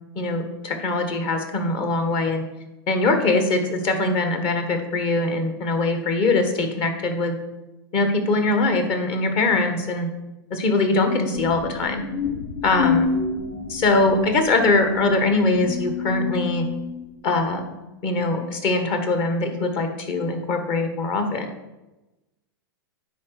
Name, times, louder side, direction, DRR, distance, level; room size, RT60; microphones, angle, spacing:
voice 1, 0.2-2.4 2.9-7.4 7.9-10.1 10.5-12.1 12.6-13.1 13.7-16.6 17.2-17.7 18.0-21.5, left 2 dB, 45° left, 6 dB, 1.7 m, -22 dB
sound 1, 11.3-17.0, left 5 dB, 80° left, 3.6 m, -28 dB
9.5 x 4.2 x 6.5 m, 1.0 s
hypercardioid pair, 110°, 13 cm